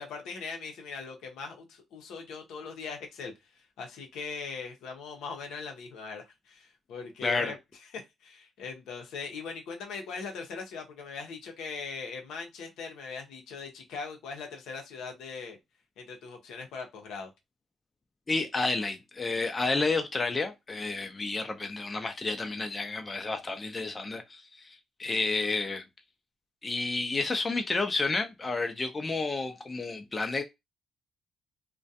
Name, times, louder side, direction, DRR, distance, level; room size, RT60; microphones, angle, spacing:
voice 1, 0.0-7.5 7.9-15.6 16.0-17.3, left 5 dB, 85° left, 0.7 m, -40 dB
voice 2, 7.2-7.5 18.3-25.8 26.6-30.4, left 3 dB, 25° left, 0.4 m, -30 dB
2.3 x 2.1 x 2.7 m
cardioid pair, 90°, 0 cm